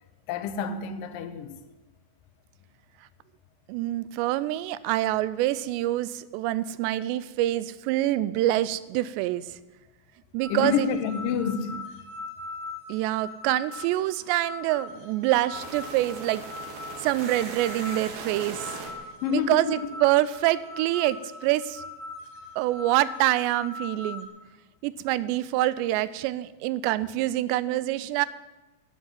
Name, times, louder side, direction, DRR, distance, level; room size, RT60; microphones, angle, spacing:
voice 1, 0.3-1.6 10.5-11.9 19.2-19.8, left 7 dB, 75° left, 2.1 m, -28 dB
voice 2, 3.7-9.4 10.3-10.9 12.9-16.4 17.0-18.7 19.3-21.2 21.4-21.8 22.6-24.3 24.8-28.3, right 15 dB, 85° right, 2.7 m, -26 dB
sound 1, 10.4-24.3, left 3 dB, 40° left, 2.2 m, -41 dB
sound 2, 15.5-20.4, right 4 dB, 55° right, 2.2 m, -40 dB
11.0 x 7.3 x 9.4 m
omnidirectional pair, 5.0 m